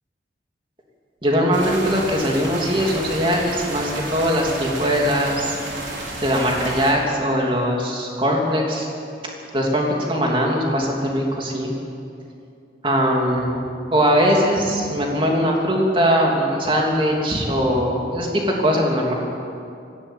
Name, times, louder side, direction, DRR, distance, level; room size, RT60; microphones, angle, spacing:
voice 1, 1.2-5.6 6.2-8.9 9.5-11.7 12.8-13.6 13.9-19.1, equal, 30° right, -1 dB, 3.0 m, -20 dB
sound 1, 1.5-6.9, right 2 dB, 80° right, 4.2 m, -32 dB
18.0 x 16.0 x 9.2 m, 2.6 s
head